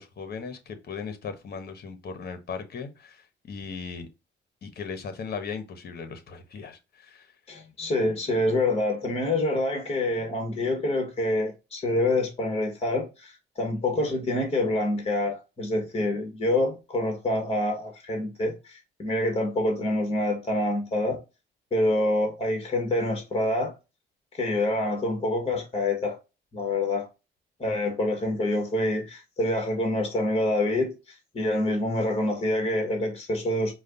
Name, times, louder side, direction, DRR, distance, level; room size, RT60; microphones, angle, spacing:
voice 1, 0.0-4.1 4.6-7.3, left 5 dB, 55° left, 1.3 m, -38 dB
voice 2, 7.5-21.2 21.7-23.7 24.3-26.2 26.5-27.1 27.6-33.7, left 1 dB, 30° left, 1.9 m, -26 dB
5.0 x 2.5 x 4.0 m
cardioid pair, 90°, 20 cm